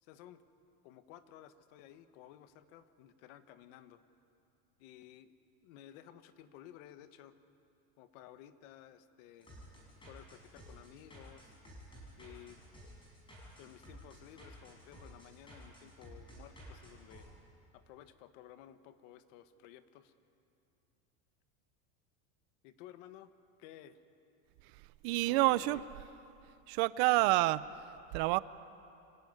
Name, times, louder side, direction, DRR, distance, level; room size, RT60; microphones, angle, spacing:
voice 1, 0.0-0.4 0.8-4.0 4.8-5.3 5.6-7.4 8.0-9.5 10.1-11.6 12.2-12.6 13.6-17.3 17.7-20.1 22.6-23.3 23.6-24.0 25.3-25.8 27.1-27.3, left 11 dB, 60° left, 11 dB, 1.3 m, -55 dB
sound 1, 9.4-17.3, equal, 10° left, 6.3 m, -53 dB
voice 2, 25.0-26.1 26.7-27.6 28.1-28.4, right 19 dB, 50° right, 17 dB, 0.5 m, -28 dB
25.5 x 17.5 x 9.5 m, 2.7 s
supercardioid pair, 165°, 43 cm